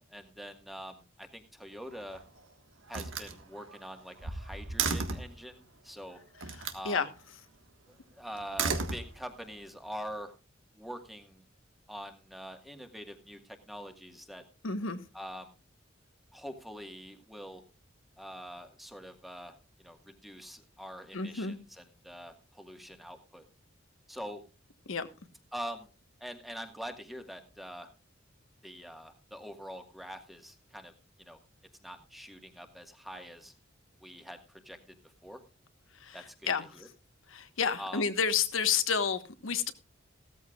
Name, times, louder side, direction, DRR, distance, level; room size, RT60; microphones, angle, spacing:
voice 1, 0.0-2.2 2.9-6.2 6.7-7.0 7.9-10.3 10.7-11.4 11.9-14.4 15.1-15.6 16.3-17.6 18.2-23.4 24.1-24.4 25.5-25.9 26.2-27.9 28.6-30.9 31.2-31.4 31.8-33.5 34.0-35.0 35.2-35.4 36.1-36.3 36.7-36.9 37.8-38.0, equal, ahead, 1.6 m, -44 dB
Slam, 1.8-2.4 2.9-5.4 6.4-6.9 8.4-9.5, right 4 dB, 80° right, 1.6 m, -34 dB
voice 2, 6.6-7.1 14.6-15.0 21.1-21.6 24.9-25.1 36.0-36.2 36.5-36.7 37.3-39.7, left 6 dB, 90° left, 1.3 m, -30 dB
16.5 x 14.0 x 2.4 m
head